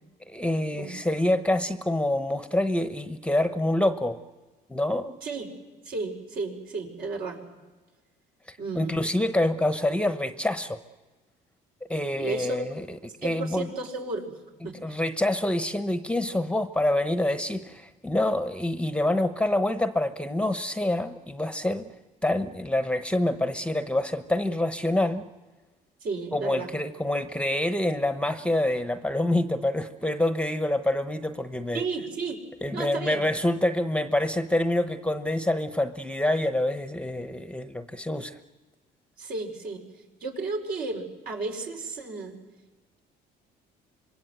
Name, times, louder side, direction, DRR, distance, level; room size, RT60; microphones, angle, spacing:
voice 1, 0.3-4.2 4.7-5.2 8.5-10.8 11.9-13.7 14.8-21.9 22.2-25.2 26.3-31.8 32.6-38.4, left 1 dB, 5° left, 9 dB, 1.0 m, -26 dB
voice 2, 5.9-7.4 8.6-8.9 12.2-12.7 13.0-15.0 26.0-26.7 31.7-32.4 32.7-33.3 39.2-39.8 40.2-42.4, right 3 dB, 65° right, 1 dB, 5.1 m, -33 dB
26.0 x 22.0 x 7.9 m, 1.3 s
cardioid pair, 110°, 17 cm